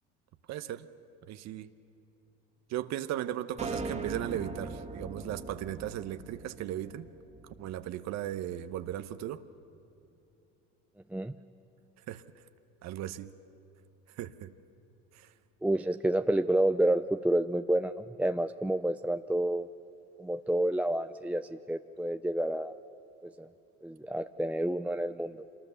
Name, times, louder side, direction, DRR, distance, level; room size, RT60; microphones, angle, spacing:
voice 1, 0.5-0.9 1.3-1.7 2.7-7.1 7.6-9.4 12.1-12.2 12.8-13.3 14.1-14.5 15.1-15.3, right 12 dB, 55° right, 12 dB, 0.9 m, -37 dB
sound 1, 3.6-8.0, right 3 dB, 20° right, 2.0 m, -40 dB
voice 2, 15.6-19.7 20.2-22.7 23.2-23.5 23.8-25.4, right 1 dB, 5° right, 9 dB, 0.4 m, -29 dB
25.5 x 19.5 x 6.9 m, 2.7 s
hypercardioid pair, 75°, 33 cm